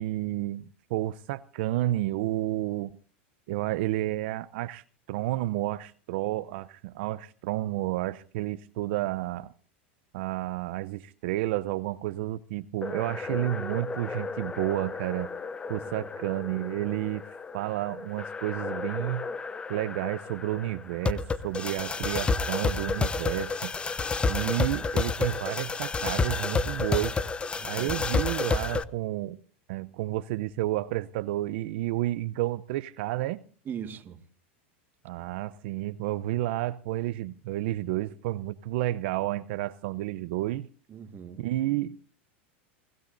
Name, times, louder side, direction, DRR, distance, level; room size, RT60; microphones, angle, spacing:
voice 1, 0.0-2.9 3.5-9.5 10.1-15.3 15.7-17.3 17.5-19.2 19.7-23.7 24.3-27.2 27.7-29.4 29.7-33.4 35.0-40.7 41.4-42.0, right 16 dB, 65° right, 0.7 m, -31 dB
sound 1, 12.8-28.8, left 4 dB, 15° left, 0.8 m, -31 dB
voice 2, 27.6-28.0 33.6-34.2 40.9-41.5, right 7 dB, 30° right, 1.7 m, -41 dB
28.5 x 16.5 x 2.6 m
hypercardioid pair, 115°, 7 cm